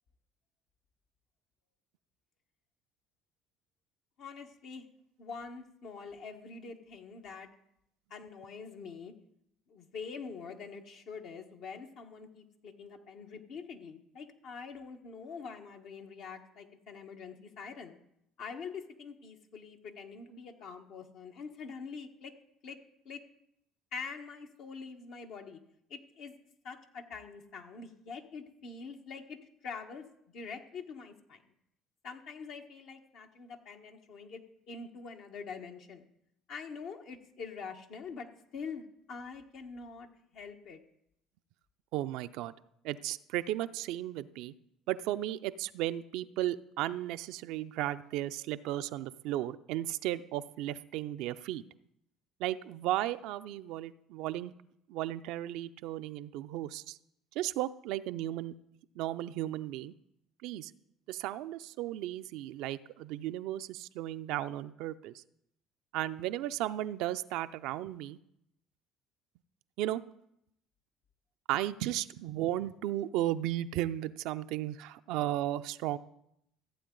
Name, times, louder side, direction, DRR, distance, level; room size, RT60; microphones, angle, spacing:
voice 1, 4.2-4.8 5.2-7.5 8.1-9.1 9.7-18.0 18.4-22.3 22.6-22.8 23.0-23.2 23.9-25.6 25.9-26.3 26.6-30.0 30.3-31.4 32.0-36.1 36.5-38.3 38.5-38.8 39.1-40.1 40.3-40.8, left 5 dB, 65° left, 4 dB, 1.3 m, -45 dB
voice 2, 41.9-42.5 42.8-44.5 44.9-51.6 52.4-54.5 54.9-57.0 57.4-58.5 59.0-59.9 60.4-60.7 61.1-65.2 65.9-68.2 69.8-70.0 71.5-76.0, right 14 dB, 70° right, 11 dB, 0.4 m, -35 dB
14.5 x 8.2 x 3.9 m, 0.77 s
hypercardioid pair, 65°, 0 cm